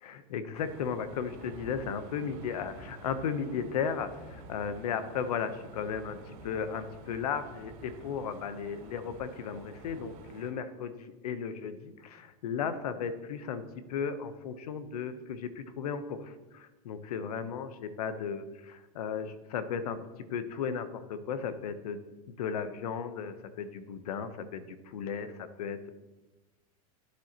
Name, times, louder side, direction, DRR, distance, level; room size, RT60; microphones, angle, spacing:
voice 1, 0.0-6.2 6.4-13.6 13.9-20.0 20.3-22.0 22.3-25.9, left 6 dB, 90° left, 11 dB, 0.9 m, -35 dB
sound 1, 0.5-10.5, right 3 dB, 65° right, 2.4 m, -49 dB
11.5 x 9.6 x 3.0 m, 1.1 s
supercardioid pair, 135°, 19 cm